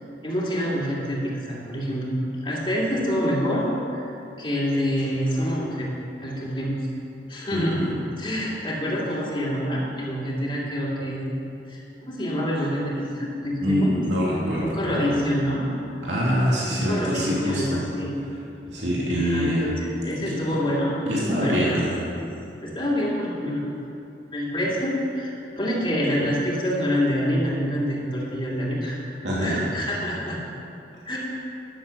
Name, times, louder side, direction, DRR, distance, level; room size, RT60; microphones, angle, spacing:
voice 1, 0.2-3.6 3.9-4.1 4.4-5.9 6.2-6.8 7.3-7.9 8.2-11.4 11.7-13.9 14.6-15.7 16.7-18.1 19.1-20.9 21.4-21.8 22.6-23.7 24.3-29.0 29.4-30.4 31.1-31.2, equal, 30° left, -6 dB, 2.4 m, -26 dB
voice 2, 7.5-7.8 13.6-15.2 16.0-17.8 18.7-19.6 20.2-20.6 21.1-22.0 29.2-29.6, equal, 75° right, -7 dB, 2.6 m, -25 dB
12.0 x 7.0 x 7.0 m, 2.7 s
head